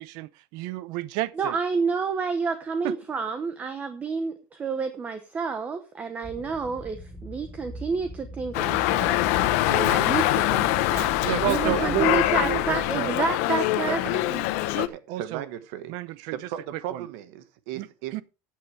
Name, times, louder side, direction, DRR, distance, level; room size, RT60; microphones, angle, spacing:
voice 1, 0.0-1.6 2.8-2.9 11.2-13.2 15.1-15.5 15.9-16.4 16.7-17.1 17.7-18.2, right 15 dB, 60° right, 0.7 m, -31 dB
voice 2, 1.4-9.2 9.7-14.4, right 5 dB, 20° right, 0.9 m, -29 dB
sound 1, 6.2-12.9, right 1 dB, 15° left, 1.2 m, -40 dB
Dog, 8.5-14.9, left 16 dB, 80° left, 0.9 m, -24 dB
voice 3, 11.3-12.2 13.9-14.1 14.7-15.9 16.3-18.1, right 11 dB, 80° right, 1.4 m, -36 dB
14.5 x 8.4 x 3.3 m
cardioid pair, 170°, 8 cm